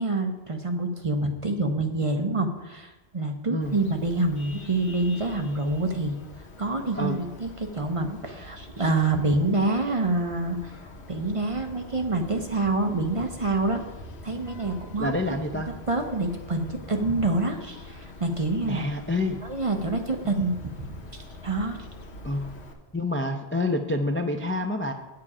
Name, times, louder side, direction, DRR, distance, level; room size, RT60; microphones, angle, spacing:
voice 1, 0.0-6.2 6.6-10.7 11.1-13.8 14.2-15.1 15.5-18.9 19.4-20.9 21.1-21.8, right 2 dB, 35° right, 4 dB, 0.7 m, -27 dB
Vehicle horn car horn honking, 3.6-22.7, left 2 dB, 80° left, 1.3 m, -44 dB
voice 2, 15.0-15.7 18.7-19.4 22.2-22.5 22.9-24.9, left 1 dB, 15° left, 4 dB, 0.4 m, -27 dB
8.4 x 7.7 x 4.9 m, 1.1 s
omnidirectional pair, 1.1 m